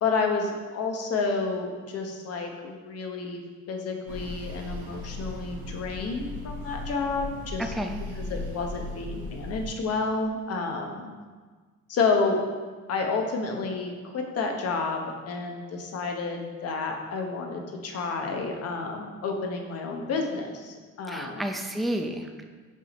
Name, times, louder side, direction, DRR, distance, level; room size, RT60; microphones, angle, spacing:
voice 1, 0.0-3.4 3.7-7.7 8.2-11.1 11.9-12.4 12.9-21.4, left 4 dB, 50° left, 3 dB, 1.0 m, -30 dB
sound 1, 4.1-9.7, left 2 dB, 75° right, 1.0 m, -37 dB
voice 2, 7.6-8.0 21.1-22.5, right 1 dB, ahead, 4 dB, 0.4 m, -31 dB
5.5 x 4.9 x 4.2 m, 1.4 s
cardioid pair, 105°, 31 cm